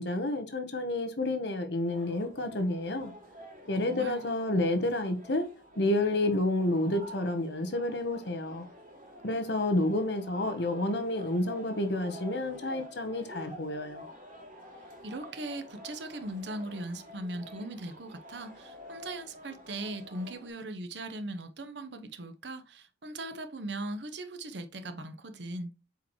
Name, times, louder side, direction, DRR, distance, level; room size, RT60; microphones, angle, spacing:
voice 1, 0.0-3.1 3.7-5.5 5.8-8.7 9.2-14.1, left 1 dB, 55° left, 1.1 m, -30 dB
sound 1, 1.8-20.5, equal, 45° right, 2.5 m, -49 dB
voice 2, 3.8-4.2 15.0-25.7, right 2 dB, 65° right, 1.0 m, -39 dB
8.1 x 4.8 x 3.1 m
head